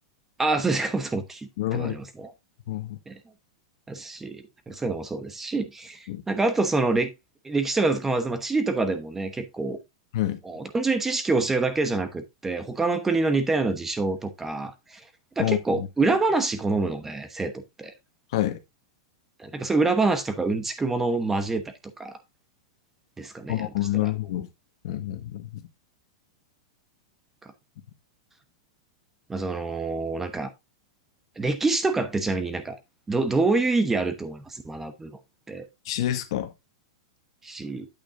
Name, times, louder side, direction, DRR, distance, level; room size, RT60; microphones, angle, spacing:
voice 1, 0.4-2.3 3.1-3.2 3.9-7.1 7.4-9.8 10.4-15.0 15.4-17.5 17.8-17.9 19.4-21.6 22.0-22.2 23.2-23.7 24.0-24.1 27.4-27.5 29.3-30.5 31.4-32.8 33.1-35.2 35.5-35.7 37.4-37.9, right 3 dB, 10° right, 1.0 m, -26 dB
voice 2, 1.6-1.9 2.7-3.0 6.1-6.2 10.1-10.4 15.4-15.9 18.3-18.6 23.5-24.5 24.8-25.6 35.8-36.5, left 14 dB, 60° left, 1.5 m, -27 dB
8.8 x 8.6 x 2.6 m
supercardioid pair, 150°, 3 cm